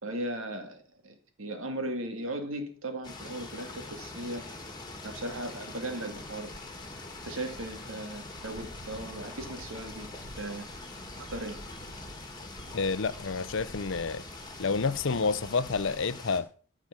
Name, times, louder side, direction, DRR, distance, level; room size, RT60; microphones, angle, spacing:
voice 1, 0.0-4.5 5.0-6.5 7.2-10.1 10.3-10.6 11.1-11.6, right 1 dB, 70° right, 2.3 m, -37 dB
sound 1, 3.0-16.4, left 3 dB, 20° left, 2.0 m, -44 dB
sound 2, 4.0-16.0, right 1 dB, 40° right, 1.1 m, -51 dB
voice 2, 12.7-14.2 14.6-16.5, left 4 dB, 60° left, 0.6 m, -29 dB
13.5 x 5.0 x 7.5 m
head